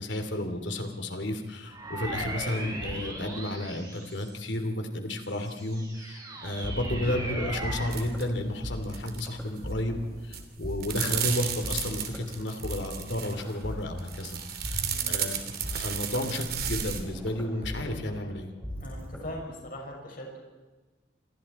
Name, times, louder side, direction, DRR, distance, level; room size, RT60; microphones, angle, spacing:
voice 1, 0.0-15.4 15.8-18.5, left 1 dB, 75° left, 6 dB, 3.0 m, -32 dB
sound 1, 1.7-4.6 5.2-8.0, right 1 dB, 20° right, 5.0 m, -38 dB
sound 2, 6.3-19.3, equal, 5° left, 6.1 m, -39 dB
sound 3, 7.9-8.2 8.5-9.3 9.6-9.9 10.3-13.5 14.0-17.0, right 9 dB, 55° right, 3.0 m, -33 dB
voice 2, 14.8-15.2 18.8-20.4, equal, 50° left, -1 dB, 5.5 m, -41 dB
28.5 x 25.5 x 4.3 m, 1.2 s
head